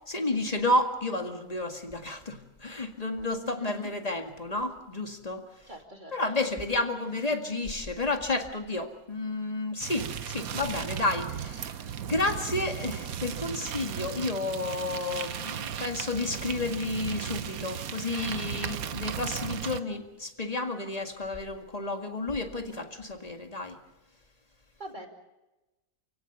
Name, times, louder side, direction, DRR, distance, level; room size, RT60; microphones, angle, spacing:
voice 1, 0.1-5.4 6.1-11.8 12.1-23.8, left 2 dB, 25° left, 5 dB, 2.0 m, -31 dB
voice 2, 3.4-3.7 5.7-6.2 24.8-25.1, right 1 dB, 30° right, 2 dB, 2.8 m, -44 dB
sound 1, 9.8-19.8, right 9 dB, 65° right, 1.3 m, -36 dB
29.0 x 17.0 x 6.9 m, 1.0 s
omnidirectional pair, 1.7 m